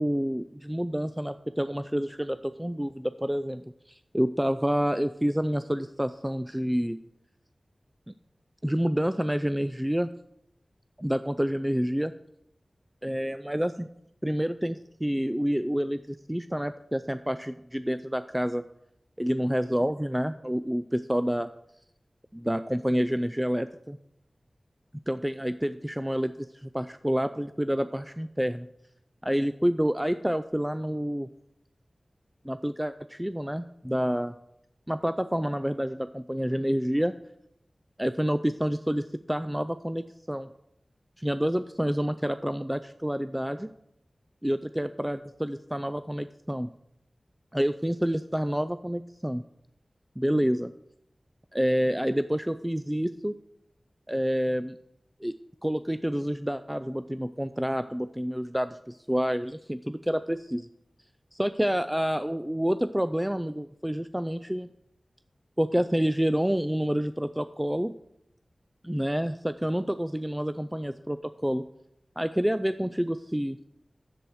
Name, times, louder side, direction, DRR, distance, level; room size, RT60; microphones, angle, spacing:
voice 1, 0.0-7.0 8.1-8.2 8.6-10.1 11.0-12.1 13.0-13.9 14.2-18.6 19.2-21.5 22.3-24.0 25.1-28.7 29.2-31.3 32.4-34.3 34.9-37.1 38.0-40.5 41.2-43.7 44.4-46.7 47.5-49.4 50.2-50.7 51.5-53.4 54.1-54.8 55.2-55.3 55.6-60.7 61.3-64.7 65.6-67.9 68.8-71.6 72.2-73.6, equal, 10° right, 10 dB, 0.3 m, -28 dB
10.5 x 7.9 x 4.8 m, 0.79 s
wide cardioid pair, 75°, 0 cm